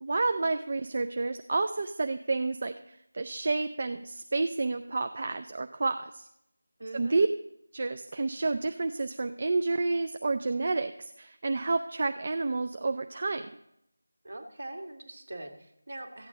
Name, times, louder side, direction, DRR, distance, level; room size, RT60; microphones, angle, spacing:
voice 1, 0.0-6.3 6.9-7.3 7.7-13.5, right 3 dB, 45° right, 8 dB, 0.4 m, -30 dB
voice 2, 6.8-7.2 14.2-16.3, right 1 dB, 60° right, 5 dB, 1.6 m, -42 dB
14.0 x 8.8 x 3.8 m, 0.79 s
figure-of-eight pair, 165°, 0 cm